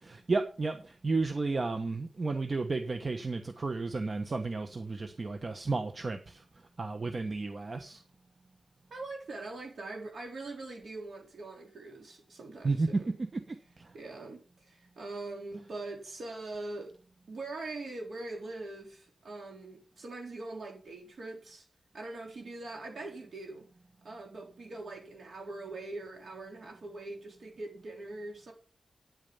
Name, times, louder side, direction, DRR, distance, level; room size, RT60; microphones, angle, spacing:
voice 1, 0.0-6.4 6.8-8.0 12.6-13.9, right 3 dB, 50° right, 1.2 m, -33 dB
voice 2, 8.9-13.2 13.9-16.9 17.3-21.7 21.9-23.7 24.0-28.5, right 2 dB, 75° right, 4.0 m, -42 dB
9.2 x 8.9 x 5.6 m
cardioid pair, 60°, 0 cm